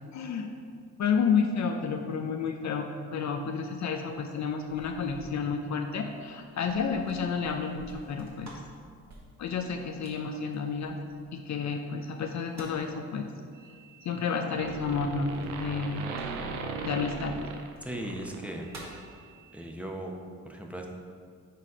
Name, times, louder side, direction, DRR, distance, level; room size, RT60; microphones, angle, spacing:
voice 1, 0.1-0.5 1.0-8.5 9.4-11.0 11.3-13.3 14.0-16.0 16.8-17.3, left 5 dB, 50° left, 4 dB, 0.7 m, -30 dB
sound 1, 4.1-11.5 12.2-13.0 15.3-16.7 17.6-17.8 18.3-19.1, right 1 dB, 50° right, 1.7 m, -51 dB
sound 2, 13.6-14.2 14.5-18.9, right 4 dB, 90° right, 0.6 m, -38 dB
voice 2, 17.8-18.7 19.5-20.1 20.4-20.9, right 1 dB, 5° right, 1 dB, 1.1 m, -37 dB
6.6 x 4.1 x 5.0 m, 2.1 s
hypercardioid pair, 50°, 35 cm